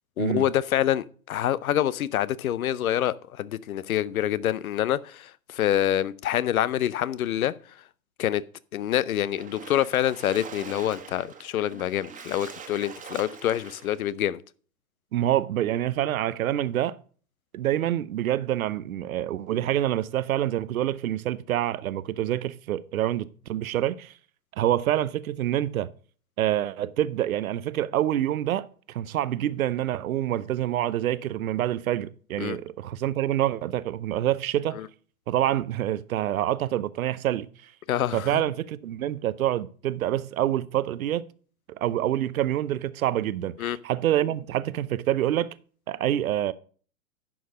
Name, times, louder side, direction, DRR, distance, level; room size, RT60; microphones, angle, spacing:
voice 1, 0.2-7.5 8.2-8.4 8.7-14.4 32.4-32.6 34.7-34.9 37.9-38.4 43.6-43.8, left 11 dB, 75° left, 0.6 m, -26 dB
Splash splatter, 9.2-14.1, right 6 dB, 20° right, 1.4 m, -44 dB
voice 2, 15.1-17.0 17.5-24.1 24.6-25.9 26.4-34.8 35.3-37.5 38.1-41.3 41.7-45.5 45.9-46.5, right 12 dB, 75° right, 0.7 m, -26 dB
10.5 x 5.1 x 5.2 m
hypercardioid pair, 105°, 42 cm